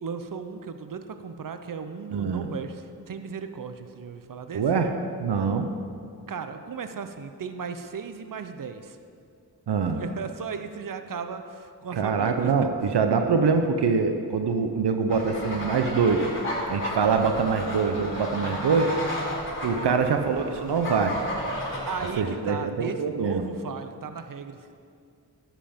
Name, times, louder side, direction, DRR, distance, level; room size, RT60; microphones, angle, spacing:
voice 1, 0.0-4.6 6.3-9.0 10.0-12.7 19.3-20.1 21.9-24.7, right 6 dB, 55° right, 9 dB, 0.7 m, -36 dB
voice 2, 2.1-2.5 4.5-4.9 5.2-5.7 9.7-10.0 11.9-16.3 16.7-18.9 19.6-21.2 22.2-23.4, right 5 dB, 85° right, 6 dB, 0.7 m, -24 dB
sound 1, 15.1-22.1, equal, 30° left, 2.9 m, -33 dB
10.5 x 7.6 x 5.1 m, 2.3 s
cardioid pair, 40°, 40 cm